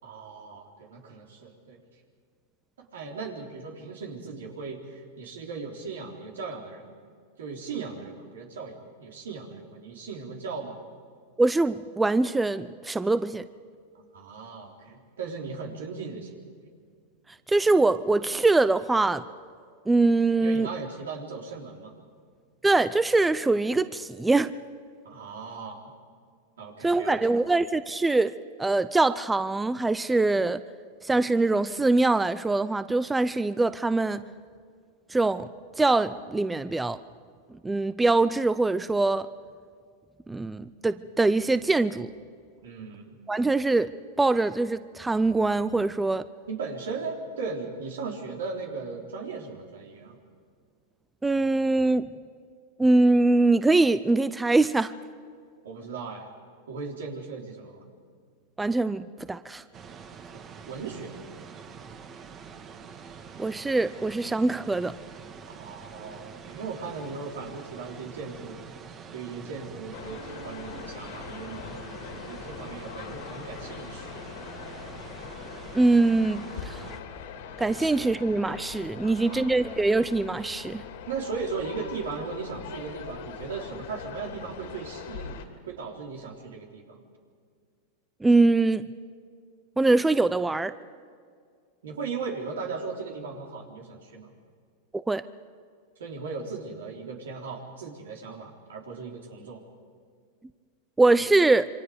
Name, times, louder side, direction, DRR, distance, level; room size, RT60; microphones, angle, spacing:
voice 1, 0.0-1.8 2.8-6.9 7.4-10.8 13.9-16.3 20.4-21.9 25.0-25.9 26.6-27.3 42.6-43.2 46.5-50.2 55.6-56.3 56.7-57.8 60.3-61.2 65.5-68.6 69.1-74.1 77.8-77.9 79.0-79.5 81.1-85.4 85.7-87.0 91.8-94.3 96.0-99.6, right 4 dB, 85° right, 1 dB, 3.7 m, -37 dB
voice 2, 11.4-13.4 17.5-19.2 19.9-20.7 22.6-24.5 26.8-28.3 28.6-30.6 31.0-34.2 35.1-35.5 35.8-37.0 37.6-39.3 40.3-42.1 43.3-43.9 44.2-46.2 51.2-52.1 52.8-54.9 58.6-59.6 63.4-65.0 75.7-76.9 77.6-80.9 88.2-88.9 89.8-90.7 94.9-95.2 101.0-101.7, right 2 dB, 10° right, 14 dB, 0.6 m, -23 dB
sound 1, 59.7-77.0, right 6 dB, 35° right, 1.7 m, -45 dB
sound 2, 69.9-85.5, left 7 dB, 70° left, 2.7 m, -42 dB
27.0 x 24.0 x 5.1 m, 2.1 s
hypercardioid pair, 115°, 0 cm